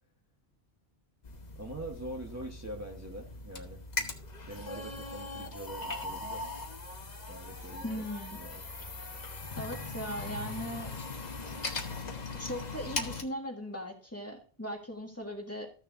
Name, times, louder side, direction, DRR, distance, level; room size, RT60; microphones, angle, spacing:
sound 1, 1.2-13.2, left 3 dB, 45° left, 1.1 m, -40 dB
voice 1, 1.5-3.8 4.5-6.5 7.3-8.6, right 1 dB, 15° right, -1 dB, 1.1 m, -43 dB
voice 2, 7.8-8.4 9.6-10.9 12.3-15.7, equal, 15° left, 1 dB, 1.8 m, -38 dB
14.0 x 6.5 x 2.6 m, 0.38 s
omnidirectional pair, 1.1 m